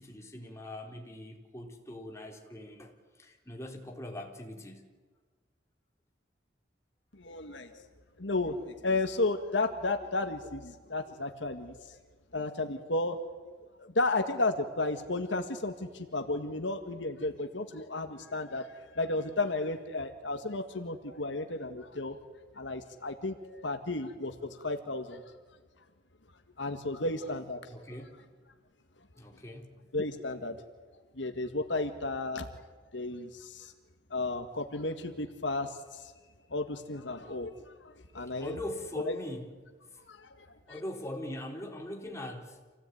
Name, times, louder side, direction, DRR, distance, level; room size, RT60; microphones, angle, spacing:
voice 1, 0.0-4.9 27.7-28.2 29.2-29.7 38.2-39.6 39.9-40.0 40.7-42.6, left 1 dB, 15° left, 1 dB, 3.9 m, -41 dB
voice 2, 7.1-7.9 8.2-12.0 12.3-13.2 13.8-22.2 22.6-25.2 26.6-27.6 29.9-30.6 31.2-32.5 32.9-33.7 34.1-36.1 36.5-38.6 39.1-39.2 40.1-40.5, left 2 dB, 70° left, 6 dB, 1.9 m, -33 dB
28.0 x 17.0 x 9.4 m, 1.4 s
head